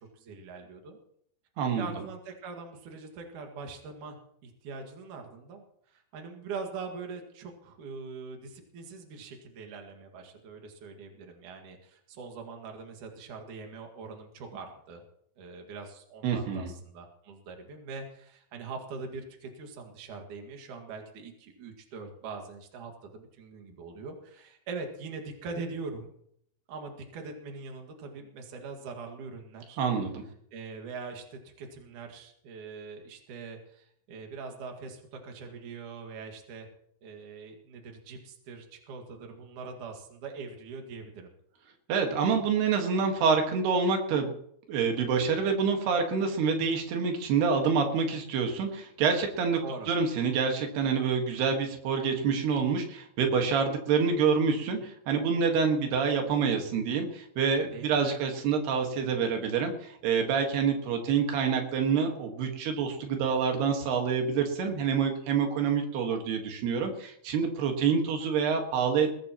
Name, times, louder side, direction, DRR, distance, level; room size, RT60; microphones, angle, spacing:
voice 1, 0.1-1.0 1.8-4.2 4.4-15.0 15.4-26.1 26.7-29.8 30.5-36.7 37.0-41.3 49.6-49.9 57.7-58.0, right 4 dB, 55° right, 3 dB, 3.3 m, -42 dB
voice 2, 16.2-16.7 29.8-30.2 41.9-44.3 44.7-49.6 49.9-59.7 60.0-69.1, right 6 dB, 90° right, 3 dB, 3.8 m, -27 dB
21.0 x 16.5 x 3.1 m, 0.70 s
omnidirectional pair, 4.5 m